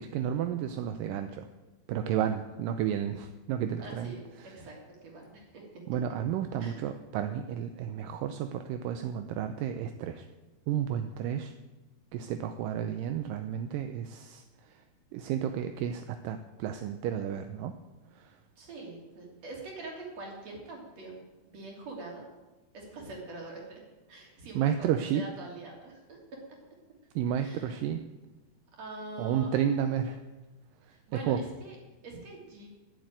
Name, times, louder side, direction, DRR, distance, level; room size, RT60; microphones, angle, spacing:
voice 1, 0.0-1.5 1.9-4.7 5.9-10.3 10.7-11.5 12.1-14.8 15.1-17.8 18.1-18.4 24.6-25.2 27.2-28.0 29.2-30.2 30.8-31.4, right 9 dB, 80° right, 8 dB, 2.2 m, -32 dB
voice 2, 3.8-4.2 4.5-5.7 6.6-6.8 18.6-21.2 21.4-22.3 22.7-23.8 24.1-26.4 27.4-27.7 28.8-29.5 30.9-31.8 32.0-32.7, right 2 dB, 45° right, -1 dB, 4.1 m, -44 dB
13.5 x 7.8 x 9.0 m, 1.2 s
omnidirectional pair, 4.2 m